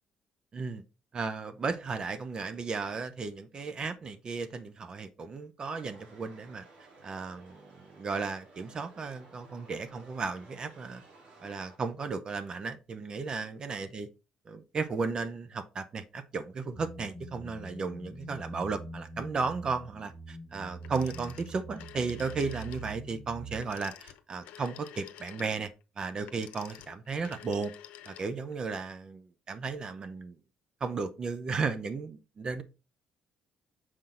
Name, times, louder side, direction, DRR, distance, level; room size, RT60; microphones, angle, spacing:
voice 1, 0.5-0.8 1.1-6.6 7.0-7.6 7.9-11.0 11.4-14.1 14.5-25.7 26.0-27.7 28.1-30.4 30.8-32.6, right 4 dB, 35° right, 0.7 m, -35 dB
sound 1, 5.7-11.8, right 2 dB, 65° right, 2.3 m, -56 dB
sound 2, 16.8-23.6, right 3 dB, 20° left, 0.9 m, -44 dB
Telephone, 20.8-22.9 23.5-28.6, left 12 dB, 90° left, 0.7 m, -50 dB
6.3 x 3.9 x 4.3 m
cardioid pair, 110°, 2 cm